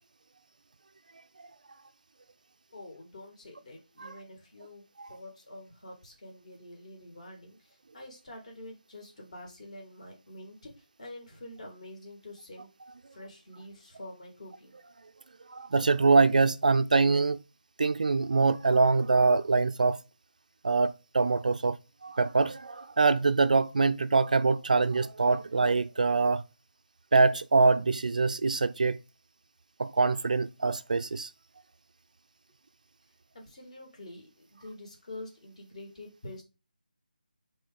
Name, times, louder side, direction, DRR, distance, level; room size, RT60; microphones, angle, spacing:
voice 1, 2.7-4.8 5.1-12.7 13.1-14.8 33.3-36.4, left 1 dB, 45° left, 2.3 m, -47 dB
voice 2, 15.5-17.4 17.8-20.0 20.6-21.8 22.0-26.4 27.1-29.0 29.8-31.3, right 3 dB, 55° right, 0.4 m, -24 dB
5.1 x 3.7 x 5.0 m
figure-of-eight pair, 155°, 5 cm